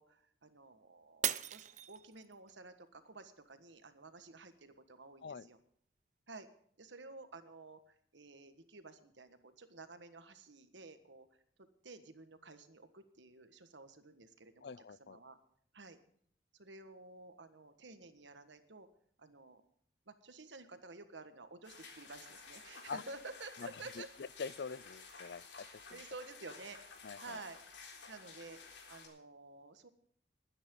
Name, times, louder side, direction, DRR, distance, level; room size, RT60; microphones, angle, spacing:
voice 1, 0.0-5.6 6.3-6.5 6.8-11.3 11.6-15.4 15.7-16.0 16.5-18.9 19.2-19.6 20.1-24.1 25.9-26.8 27.2-27.6 28.1-28.6 28.9-29.9, right 3 dB, 90° right, 10 dB, 1.5 m, -52 dB
Shatter, 1.2-2.5 3.0-3.5 4.0-4.1, right 11 dB, 40° right, 0.5 m, -38 dB
voice 2, 14.6-15.2 22.9-23.0 23.6-23.7 24.0-26.0 27.0-27.4, left 5 dB, 70° left, 21 dB, 0.4 m, -45 dB
sound 1, 21.6-29.1, left 4 dB, 90° left, 3.8 m, -54 dB
21.5 x 9.9 x 3.8 m, 0.63 s
head